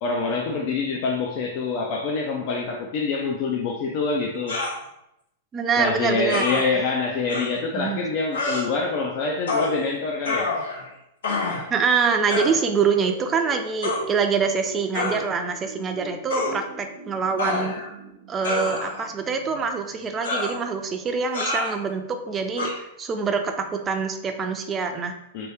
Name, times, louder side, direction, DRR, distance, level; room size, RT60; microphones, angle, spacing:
voice 1, 0.0-4.6 5.8-10.5 25.3-25.5, left 4 dB, 50° left, 0 dB, 0.4 m, -26 dB
sound 1, 4.5-4.8 6.3-6.6 7.3-7.5 8.3-8.6 9.5-9.7 10.2-10.9 11.2-11.7 12.3-12.6 13.8-14.0 14.9-15.2 16.3-16.5 17.4-17.9 18.4-19.1 20.2-20.6 21.3-21.7 22.6-22.7, left 3 dB, 80° left, 1.1 m, -27 dB
voice 2, 5.5-6.7 7.7-8.0 11.7-17.8 18.3-25.2, right 5 dB, 25° right, 5 dB, 0.4 m, -25 dB
sound 2, 11.6-20.6, equal, 80° right, 1.0 m, -43 dB
2.9 x 2.7 x 3.3 m, 0.83 s
hypercardioid pair, 120°, 0 cm